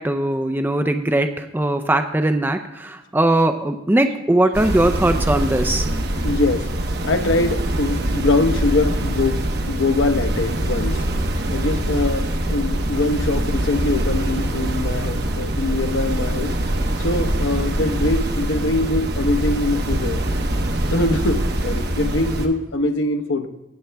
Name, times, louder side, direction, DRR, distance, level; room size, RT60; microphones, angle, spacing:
voice 1, 0.0-5.9, right 1 dB, 10° right, 7 dB, 0.4 m, -20 dB
sound 1, 4.5-22.5, right 1 dB, 60° right, 1.0 m, -23 dB
voice 2, 6.2-6.7 7.0-11.0 11.5-16.6 17.0-20.2 20.9-23.5, left 2 dB, 80° left, 8 dB, 0.8 m, -23 dB
17.5 x 6.9 x 3.3 m, 0.99 s
head